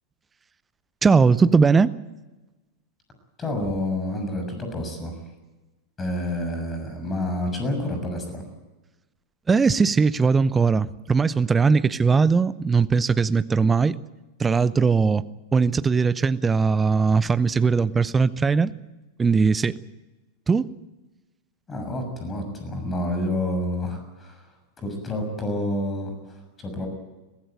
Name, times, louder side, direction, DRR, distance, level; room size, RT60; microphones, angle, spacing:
voice 1, 1.0-1.9 9.5-14.0 14.4-15.2 15.5-18.7 19.2-19.8 20.5-20.7, right 5 dB, 15° right, 16 dB, 0.8 m, -19 dB
voice 2, 3.4-5.2 6.0-8.4 21.7-24.5 24.8-26.9, left 1 dB, 20° left, 5 dB, 6.6 m, -29 dB
23.0 x 15.5 x 9.3 m, 1.1 s
figure-of-eight pair, 90°, 0 cm